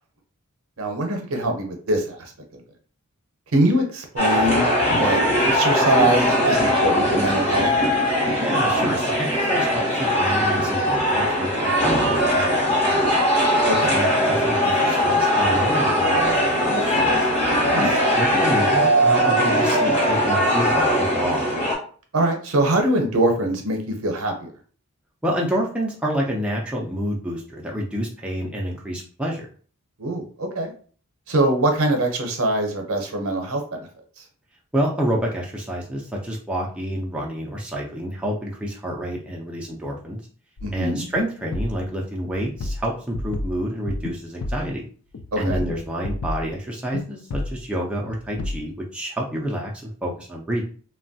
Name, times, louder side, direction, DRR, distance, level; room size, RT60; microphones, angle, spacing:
voice 1, 0.8-2.6 3.5-4.7 5.0-7.7 13.6-13.9 17.7-17.9 22.1-24.5 30.0-30.7 31.3-33.9 40.6-41.1 45.3-45.7, right 1 dB, 70° right, 3 dB, 0.7 m, -23 dB
sound 1, 4.2-21.8, equal, 30° left, 0.9 m, -20 dB
voice 2, 8.4-13.2 13.9-17.3 17.8-21.5 25.2-29.5 34.7-40.2 40.7-44.9 45.4-50.6, equal, 5° right, -2 dB, 0.3 m, -28 dB
sound 2, 40.6-40.9 41.1-41.3 41.5-41.8 42.2-44.2 44.4-44.7 45.1-46.5 46.9-47.0 47.3-47.6 48.0-48.6, left 2 dB, 65° left, 0.4 m, -31 dB
3.0 x 2.2 x 2.6 m, 0.43 s
head